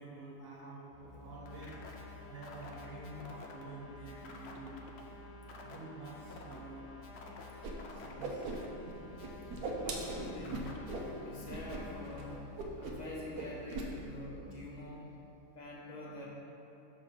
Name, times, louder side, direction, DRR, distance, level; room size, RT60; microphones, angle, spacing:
voice 1, 0.0-1.9 2.3-4.8 5.6-6.9 7.9-8.6, right 2 dB, 45° right, -7 dB, 1.5 m, -48 dB
sound 1, 0.9-14.6, left 3 dB, 85° left, 1.3 m, -54 dB
sound 2, 1.4-12.4, left 3 dB, 60° left, 0.7 m, -51 dB
Whoosh swoosh swish, 7.6-7.7 8.0-8.9 9.2-11.1 11.5-11.8 12.1-12.2 12.6-13.1 13.3-13.9, right 3 dB, 85° right, 1.3 m, -39 dB
voice 2, 9.1-9.4 9.8-10.8 11.2-12.5 12.8-15.1 15.5-16.3, left 1 dB, 30° left, -5 dB, 1.0 m, -46 dB
6.5 x 3.6 x 5.6 m, 2.9 s
omnidirectional pair, 1.6 m